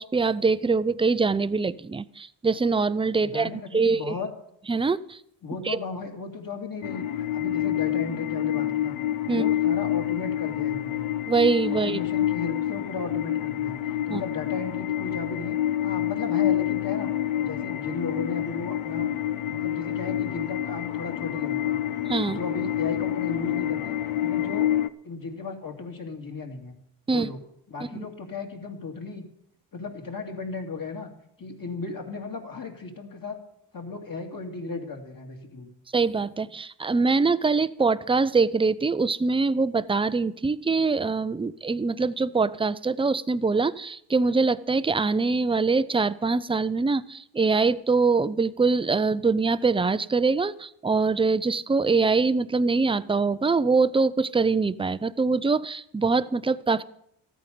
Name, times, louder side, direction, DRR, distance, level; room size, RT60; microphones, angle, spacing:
voice 1, 0.0-4.1 4.7-5.2 5.6-5.8 9.3-9.4 11.3-12.0 14.1-14.2 22.1-22.4 27.1-27.3 27.8-28.1 35.9-56.8, right 4 dB, 10° right, 0.4 m, -24 dB
voice 2, 3.2-4.3 5.4-9.0 9.3-11.0 11.7-19.1 19.5-21.8 22.2-23.9 24.2-24.7 25.0-26.7 27.1-27.4 27.7-29.2 29.7-31.1 31.4-33.4 33.7-35.7, left 4 dB, 45° left, 2.5 m, -35 dB
sound 1, 6.8-24.9, left 12 dB, 85° left, 0.7 m, -27 dB
13.5 x 9.2 x 6.8 m
cardioid pair, 80°, 47 cm